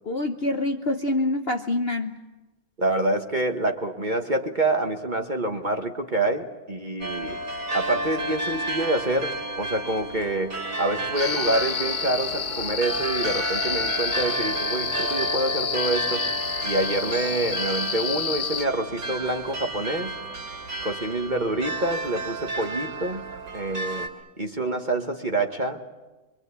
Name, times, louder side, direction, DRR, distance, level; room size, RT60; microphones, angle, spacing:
voice 1, 0.0-2.2, left 2 dB, 45° left, 5 dB, 0.9 m, -26 dB
voice 2, 2.8-7.4 7.7-16.3 16.6-20.2 20.8-23.3 23.5-24.1 24.4-25.8, right 2 dB, 30° right, 5 dB, 1.2 m, -27 dB
sound 1, 7.0-24.1, right 2 dB, 85° right, 3.4 m, -32 dB
sound 2, 11.2-18.7, left 7 dB, 65° left, 1.5 m, -29 dB
24.5 x 24.0 x 8.3 m, 1.2 s
omnidirectional pair, 1.9 m